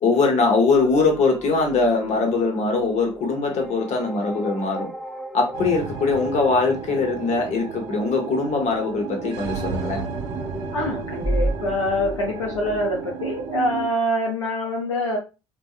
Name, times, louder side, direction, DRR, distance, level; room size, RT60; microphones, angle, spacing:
voice 1, 0.0-4.9 5.3-10.0, left 3 dB, 50° left, 2 dB, 0.8 m, -21 dB
sound 1, 0.7-13.0, right 1 dB, ahead, 0.5 m, -34 dB
sound 2, 5.5-13.9, right 7 dB, 70° right, 0.4 m, -34 dB
voice 2, 10.7-15.2, left 1 dB, 90° left, -2 dB, 0.5 m, -25 dB
2.6 x 2.0 x 2.3 m, 0.29 s
figure-of-eight pair, 55°, 15 cm